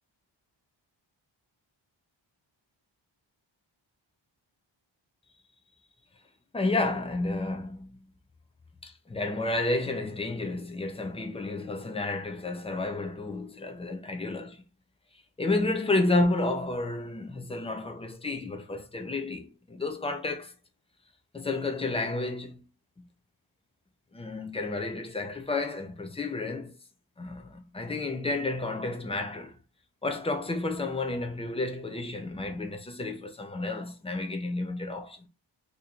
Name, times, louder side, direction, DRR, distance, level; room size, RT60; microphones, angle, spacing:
voice 1, 6.5-8.0 8.8-14.6 15.4-20.5 21.3-22.6 24.1-26.7 27.2-29.6 30.0-35.3, left 2 dB, 15° left, 0.4 m, -31 dB
2.9 x 2.6 x 3.6 m
wide cardioid pair, 145°, 47 cm